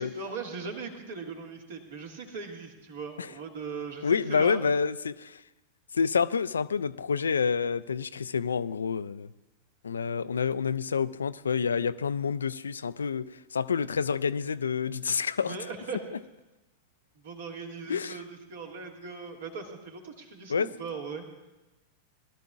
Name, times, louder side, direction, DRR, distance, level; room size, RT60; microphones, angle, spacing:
voice 1, 0.0-4.6 15.4-16.0 17.2-21.2, right 4 dB, 60° right, 2 dB, 1.9 m, -39 dB
voice 2, 4.0-5.4 5.9-9.3 9.8-15.6 17.9-18.2 20.5-20.7, left 6 dB, 70° left, 16 dB, 0.3 m, -28 dB
20.5 x 12.0 x 2.4 m, 1.0 s
figure-of-eight pair, 90°, 0 cm